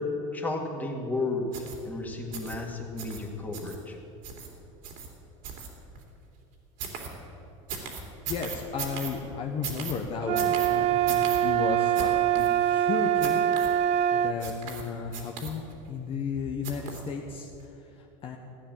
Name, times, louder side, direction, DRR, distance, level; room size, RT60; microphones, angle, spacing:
voice 1, 0.0-4.0, left 2 dB, 10° left, 1 dB, 2.1 m, -33 dB
sound 1, 1.5-1.8 2.3-2.6 3.0-3.2 3.5-3.8 4.2-4.5 4.8-5.1 5.4-6.0 6.8-7.1 7.7-9.1 9.6-9.9 10.4-10.7 11.1-11.4 11.9-12.1 12.4-12.5 13.2-13.7 14.4-14.8 15.1-15.8 16.6-17.1 17.5-17.6, right 6 dB, 60° right, 3.0 m, -37 dB
voice 2, 8.3-18.4, left 5 dB, 35° left, 1 dB, 1.2 m, -34 dB
sound 2, 10.2-14.4, right 11 dB, 40° right, 0.6 m, -24 dB
15.5 x 9.6 x 7.5 m, 2.8 s
supercardioid pair, 120°, 16 cm